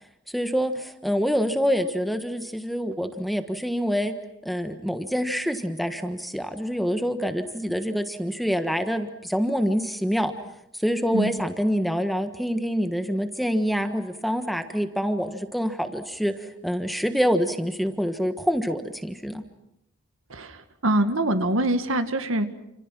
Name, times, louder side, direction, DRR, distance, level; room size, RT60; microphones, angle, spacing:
voice 1, 0.3-4.1 4.4-10.3 10.7-19.4, equal, ahead, 8 dB, 1.3 m, -26 dB
voice 2, 20.3-22.5, right 1 dB, 85° right, 9 dB, 2.0 m, -24 dB
29.0 x 27.5 x 6.1 m, 0.83 s
head